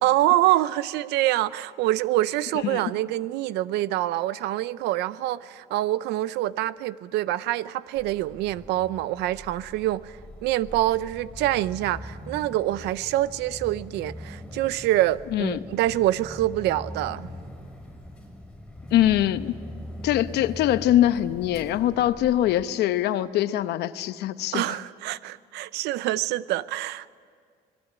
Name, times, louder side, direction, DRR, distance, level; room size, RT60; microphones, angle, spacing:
voice 1, 0.0-17.3 24.5-27.1, right 15 dB, 90° right, 0.7 m, -25 dB
sound 1, 8.0-22.6, equal, 5° left, 6.4 m, -42 dB
voice 2, 18.9-19.5 20.0-24.8, left 12 dB, 75° left, 0.9 m, -23 dB
26.0 x 20.0 x 8.9 m
cardioid pair, 110°, 17 cm